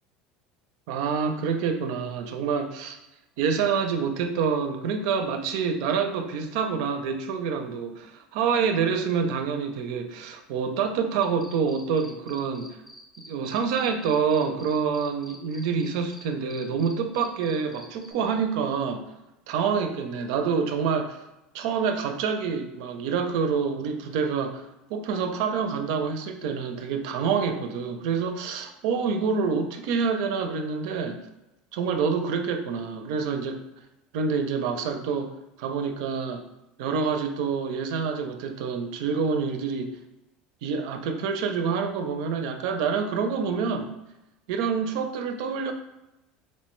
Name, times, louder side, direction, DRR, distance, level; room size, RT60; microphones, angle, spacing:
voice 1, 0.9-3.0 3.4-12.8 13.2-19.1 19.5-21.2 21.5-24.6 24.9-31.2 31.7-33.6 34.1-35.3 35.6-36.4 36.8-39.9 40.6-44.0 44.5-45.7, right 6 dB, 75° right, 7 dB, 0.4 m, -27 dB
sound 1, 11.2-16.2 16.5-18.1, equal, ahead, 0.5 m, -47 dB
4.2 x 2.1 x 3.0 m, 0.94 s
supercardioid pair, 125°, 3 cm